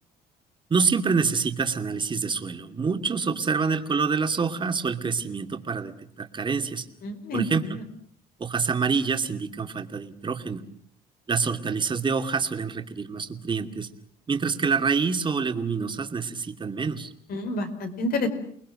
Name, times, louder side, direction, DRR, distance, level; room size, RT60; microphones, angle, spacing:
voice 1, 0.7-6.9 7.3-7.8 8.4-10.6 11.3-13.9 14.3-17.1, right 5 dB, 30° right, 7 dB, 2.6 m, -26 dB
voice 2, 7.0-7.8 17.3-18.3, left 1 dB, 60° left, 7 dB, 5.1 m, -29 dB
30.0 x 20.5 x 7.7 m, 0.62 s
cardioid pair, 110°, 17 cm